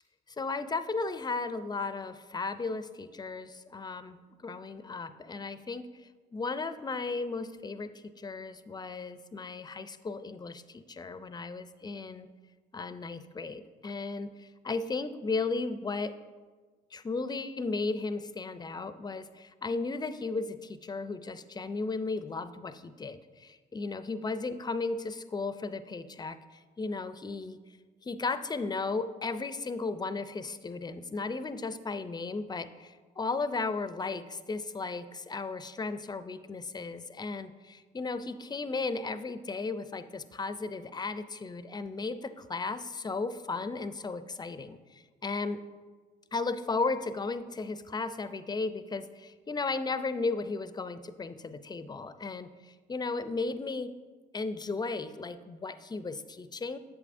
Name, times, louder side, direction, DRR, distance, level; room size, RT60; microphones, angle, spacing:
voice 1, 0.4-12.3 12.7-16.2 16.9-27.6 28.0-45.6 46.3-53.9 54.3-56.8, left 3 dB, 20° left, 12 dB, 0.4 m, -35 dB
8.4 x 7.0 x 2.6 m, 1.4 s
supercardioid pair, 55°, 20 cm